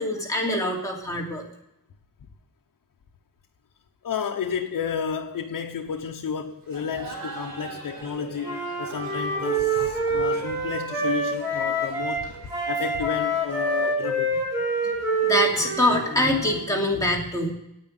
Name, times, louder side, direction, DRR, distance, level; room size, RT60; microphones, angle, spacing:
voice 1, 0.0-1.4 14.8-17.5, left 1 dB, 10° left, 2.9 m, -24 dB
voice 2, 4.0-12.3 12.7-14.4, left 6 dB, 60° left, 1.0 m, -31 dB
Laughter, 6.6-14.1, right 3 dB, 60° right, 5.6 m, -43 dB
Wind instrument woodwind instrument, 8.4-12.2 12.5-16.6, right 2 dB, 5° right, 6.4 m, -26 dB
9.8 x 8.8 x 9.1 m
wide cardioid pair, 160°, 37 cm